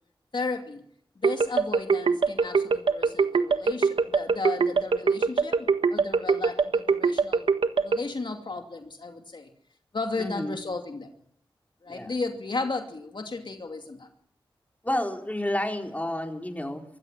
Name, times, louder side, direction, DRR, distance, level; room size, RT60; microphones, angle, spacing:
voice 1, 0.3-0.8 1.2-7.5 7.8-9.5 9.9-11.1 11.8-14.1, left 3 dB, 60° left, 4 dB, 2.6 m, -34 dB
sound 1, 1.2-8.0, right 5 dB, 80° right, 1.6 m, -22 dB
voice 2, 10.2-10.6 11.9-12.1 14.8-16.8, left 1 dB, 15° left, 3 dB, 4.4 m, -30 dB
24.0 x 16.5 x 7.5 m, 0.69 s
cardioid pair, 45°, 9 cm